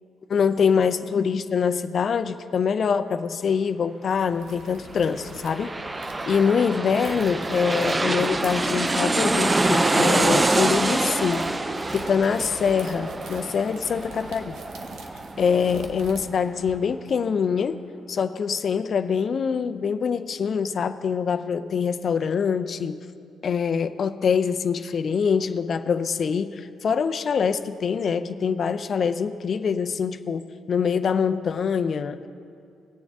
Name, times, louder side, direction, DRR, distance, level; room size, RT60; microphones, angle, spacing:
voice 1, 0.3-5.7 6.3-11.5 11.9-14.5 15.4-17.8 18.1-23.0 23.4-32.3, left 6 dB, 50° left, 9 dB, 0.5 m, -24 dB
sound 1, 4.1-16.7, right 3 dB, 80° right, 1.1 m, -44 dB
sound 2, 5.1-16.5 16.8-16.9, right 2 dB, 20° right, 0.5 m, -26 dB
20.0 x 7.1 x 3.5 m, 2.6 s
cardioid pair, 80°, 0 cm